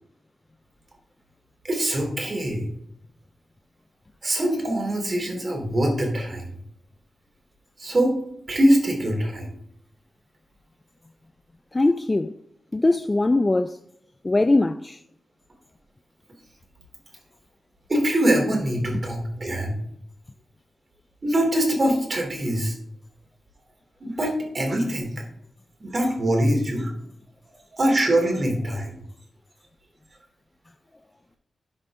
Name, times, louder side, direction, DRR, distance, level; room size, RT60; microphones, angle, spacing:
voice 1, 1.6-2.7 4.2-6.5 7.8-8.1 8.5-9.5 17.9-19.8 21.2-22.8 24.0-25.1 25.8-26.9 27.7-28.9, right 1 dB, 45° right, 3.2 m, -23 dB
voice 2, 11.7-12.3 12.7-13.8 14.2-15.0, left 2 dB, 25° left, 0.3 m, -21 dB
12.0 x 5.3 x 3.7 m
cardioid pair, 65°, 0 cm